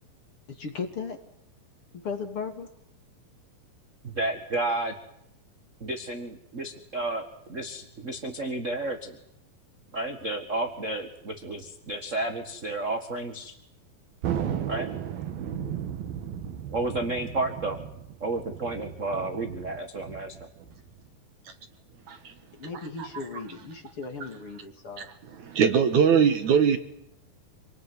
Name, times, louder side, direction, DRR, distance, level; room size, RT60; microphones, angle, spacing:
voice 1, 0.5-1.2 1.9-2.7 22.5-25.1, left 5 dB, 40° left, 5 dB, 3.3 m, -36 dB
voice 2, 4.0-4.9 5.8-9.2 9.9-13.5 14.7-14.9 16.7-17.8 18.2-20.5, right 2 dB, 35° right, 6 dB, 1.3 m, -31 dB
Thunder, 14.2-21.1, right 9 dB, 75° right, 3.5 m, -35 dB
voice 3, 25.4-26.8, right 7 dB, 60° right, 8 dB, 2.6 m, -21 dB
27.5 x 20.0 x 9.6 m, 0.79 s
omnidirectional pair, 4.2 m